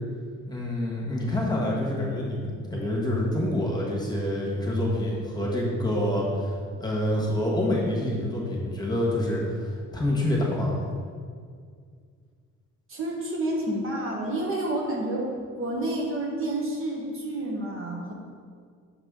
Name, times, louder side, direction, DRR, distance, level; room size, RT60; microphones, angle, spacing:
voice 1, 0.5-10.8, left 1 dB, 15° left, -4 dB, 1.5 m, -27 dB
voice 2, 12.9-18.1, right 1 dB, 45° right, -1 dB, 1.2 m, -29 dB
6.5 x 4.8 x 3.7 m, 2.1 s
cardioid pair, 90°, 30 cm